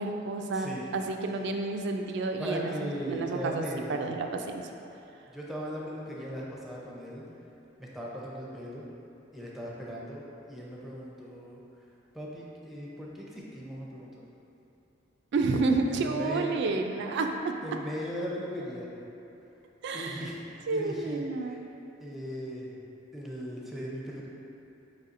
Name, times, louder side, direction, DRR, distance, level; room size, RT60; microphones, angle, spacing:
voice 1, 0.0-3.6 3.9-4.7 15.3-17.6 19.8-20.3 20.7-21.6, right 3 dB, 60° right, 4 dB, 0.3 m, -30 dB
voice 2, 0.5-0.8 2.4-4.0 5.3-7.2 7.8-8.8 9.3-11.6 12.1-14.1 15.9-16.5 17.6-18.9 19.9-21.6 22.0-22.8 23.1-24.3, equal, ahead, -5 dB, 0.6 m, -38 dB
5.2 x 4.1 x 2.5 m, 3.0 s
head